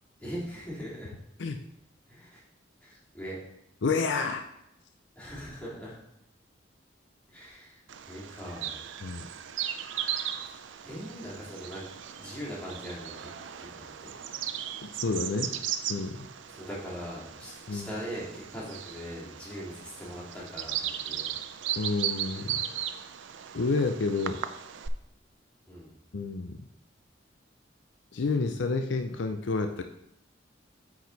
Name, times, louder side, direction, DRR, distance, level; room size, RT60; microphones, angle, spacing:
voice 1, 0.2-1.1 2.1-2.4 2.8-3.4 5.1-6.0 7.3-8.7 10.8-13.3 13.6-13.7 14.0-14.1 16.4-21.3 25.7-25.9, equal, 5° left, -9 dB, 2.9 m, -41 dB
voice 2, 3.8-4.4 9.0-9.3 14.8-15.5 15.9-16.3 17.7-17.9 21.8-22.6 23.5-24.4 26.1-26.5 28.1-29.8, left 3 dB, 70° left, 6 dB, 0.5 m, -29 dB
Bird vocalization bird call bird song, 7.9-24.9, right 10 dB, 75° right, 0.5 m, -37 dB
8.5 x 4.7 x 4.0 m, 0.82 s
head